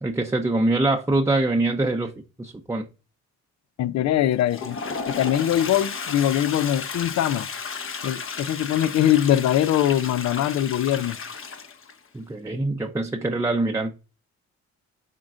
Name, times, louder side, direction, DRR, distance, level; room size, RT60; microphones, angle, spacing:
voice 1, 0.0-2.1 2.4-2.8 12.1-13.9, right 2 dB, 10° right, 0.7 m, -24 dB
voice 2, 3.8-4.8 5.1-7.5 8.0-11.2, left 11 dB, 65° left, 0.5 m, -22 dB
Toilet flush, 4.3-12.0, left 5 dB, 45° left, 0.9 m, -33 dB
10.5 x 3.7 x 2.5 m
cardioid pair, 90°, 30 cm